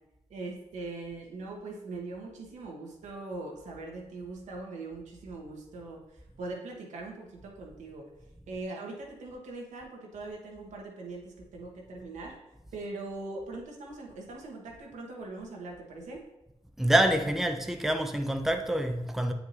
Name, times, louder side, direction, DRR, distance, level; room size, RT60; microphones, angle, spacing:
voice 1, 0.3-8.1 8.5-12.4 12.7-16.2, right 3 dB, 80° right, 1.2 m, -41 dB
voice 2, 16.8-19.3, right 1 dB, 5° right, 0.6 m, -26 dB
8.1 x 4.7 x 2.6 m
cardioid pair, 60°, 12 cm